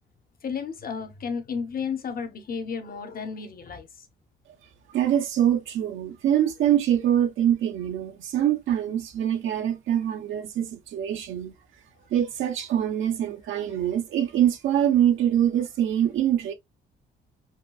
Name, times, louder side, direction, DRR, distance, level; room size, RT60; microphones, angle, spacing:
voice 1, 0.4-3.9 13.5-13.6, left 6 dB, 45° left, 1.0 m, -33 dB
voice 2, 4.9-11.5 12.1-16.5, right 10 dB, 80° right, 1.0 m, -24 dB
5.9 x 2.3 x 2.3 m
cardioid pair, 90°, 20 cm